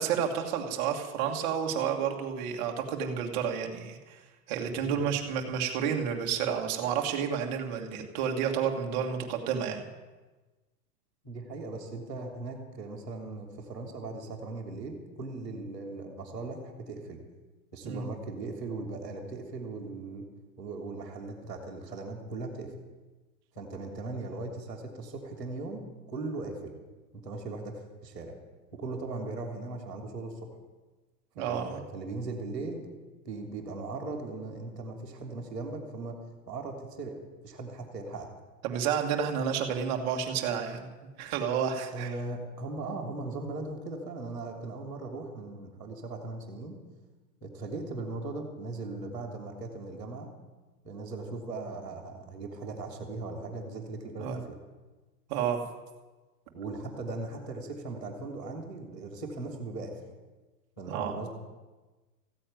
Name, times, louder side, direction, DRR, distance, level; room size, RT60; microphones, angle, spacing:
voice 1, 0.0-4.2 4.5-9.9 17.8-18.0 31.3-31.8 38.6-40.9 41.2-42.1 54.2-54.4 55.3-55.7 60.9-61.1, right 7 dB, 30° right, 3 dB, 1.7 m, -30 dB
voice 2, 11.2-17.2 17.7-20.2 20.6-22.7 23.5-26.7 27.1-28.3 28.7-30.4 31.4-32.9 33.2-36.2 36.5-38.3 41.9-46.7 47.4-50.3 50.8-54.5 56.5-60.0 60.8-61.3, right 3 dB, 5° left, -13 dB, 0.4 m, -38 dB
15.0 x 9.9 x 9.2 m, 1.2 s
supercardioid pair, 175°, 48 cm